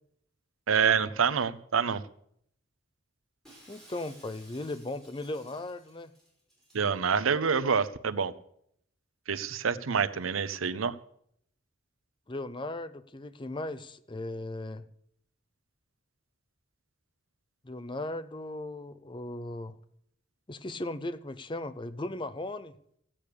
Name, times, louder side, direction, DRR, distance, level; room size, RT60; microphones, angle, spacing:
voice 1, 0.7-2.0 6.7-8.3 9.3-11.0, right 6 dB, 90° right, 13 dB, 0.7 m, -27 dB
Shatter, 3.4-6.9, right 1 dB, ahead, 5.7 m, -56 dB
voice 2, 3.7-6.1 12.3-14.8 17.6-19.8 20.5-22.7, left 2 dB, 25° left, 13 dB, 0.6 m, -37 dB
15.5 x 8.6 x 6.8 m, 0.70 s
head